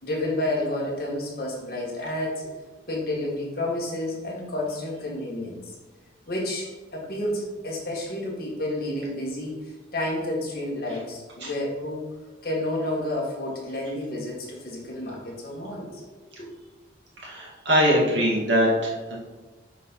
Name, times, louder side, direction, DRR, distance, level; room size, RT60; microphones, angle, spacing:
voice 1, 0.0-2.5 2.9-5.7 6.3-12.1 12.4-16.0 16.4-16.5, left 1 dB, 50° left, -3 dB, 2.1 m, -30 dB
voice 2, 17.2-19.2, equal, 70° right, -4 dB, 2.3 m, -22 dB
7.4 x 4.1 x 5.6 m, 1.3 s
head